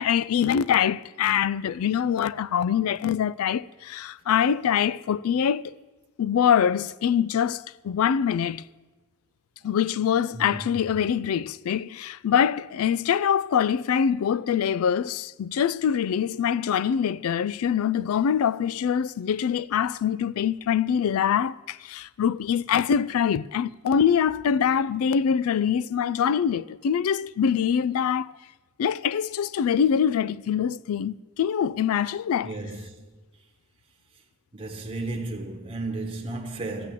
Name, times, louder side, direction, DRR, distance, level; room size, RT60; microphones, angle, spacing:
voice 1, 0.0-5.7 6.2-8.6 9.6-28.3 28.8-32.5, left 8 dB, 75° left, 0.3 m, -24 dB
voice 2, 10.3-10.8 32.4-32.9 34.5-36.9, right 2 dB, 25° right, 1.2 m, -33 dB
13.5 x 7.4 x 7.6 m
head